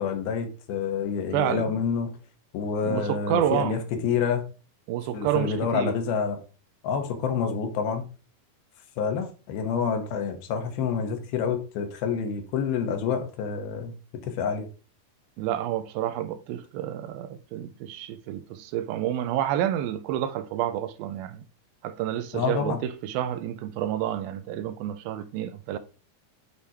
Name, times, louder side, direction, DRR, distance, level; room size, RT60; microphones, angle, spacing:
voice 1, 0.0-2.1 2.5-4.4 5.1-6.4 6.8-8.1 9.0-13.9 14.2-14.7 22.3-22.8, left 6 dB, 80° left, 2.9 m, -28 dB
voice 2, 1.3-1.7 2.8-3.8 4.9-5.9 15.4-21.4 21.8-25.8, right 11 dB, 80° right, 2.2 m, -29 dB
8.6 x 4.6 x 2.8 m
omnidirectional pair, 4.4 m